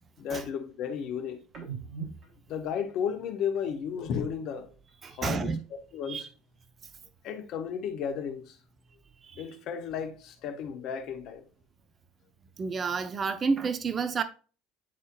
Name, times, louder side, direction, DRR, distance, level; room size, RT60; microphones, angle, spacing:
voice 1, 0.2-1.4 2.5-4.7 5.1-5.6 5.9-6.3 7.2-8.6 9.3-11.5, left 7 dB, 55° left, 1.4 m, -33 dB
sound 1, 1.5-5.1 5.4-7.2 7.5-9.4 9.7-11.6, right 6 dB, 50° right, 3.3 m, -49 dB
voice 2, 5.0-5.6 6.1-6.2 9.2-9.4 12.6-14.2, right 5 dB, 35° right, 0.8 m, -30 dB
9.8 x 4.2 x 2.5 m
hypercardioid pair, 65°, 0 cm